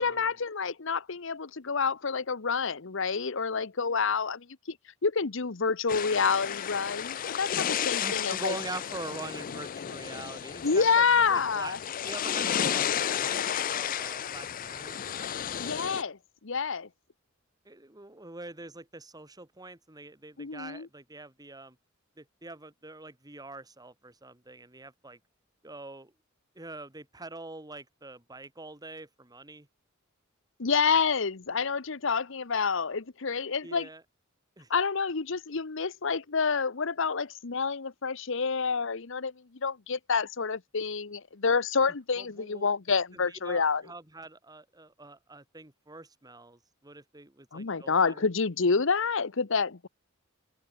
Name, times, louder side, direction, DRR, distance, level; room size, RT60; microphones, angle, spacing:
voice 1, 0.0-4.5 5.0-8.5 10.6-11.8 15.6-16.2 16.4-16.9 20.4-20.9 30.6-33.9 34.7-39.3 39.6-43.8 47.5-49.9, left 5 dB, 65° left, 1.0 m, -28 dB
sound 1, 5.9-16.0, left 9 dB, 45° left, 0.4 m, -32 dB
voice 2, 8.0-15.0 17.6-21.8 22.2-25.2 25.6-26.1 26.5-29.7 33.6-34.0 34.6-34.7 42.2-42.7 43.1-48.3, right 2 dB, 20° right, 2.4 m, -44 dB
open air
head